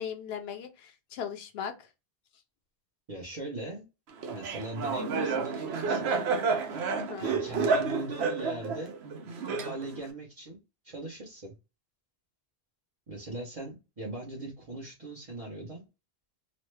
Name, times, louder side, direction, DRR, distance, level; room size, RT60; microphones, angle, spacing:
voice 1, 0.0-1.7 6.9-7.4, left 8 dB, 70° left, 0.8 m, -38 dB
voice 2, 3.1-3.8 4.3-6.1 7.2-9.0 9.5-10.6 10.8-11.5 13.1-15.8, right 2 dB, 35° right, 0.9 m, -40 dB
Laughter, 4.2-10.1, right 4 dB, 75° right, 0.9 m, -30 dB
3.0 x 2.1 x 3.2 m
omnidirectional pair, 1.1 m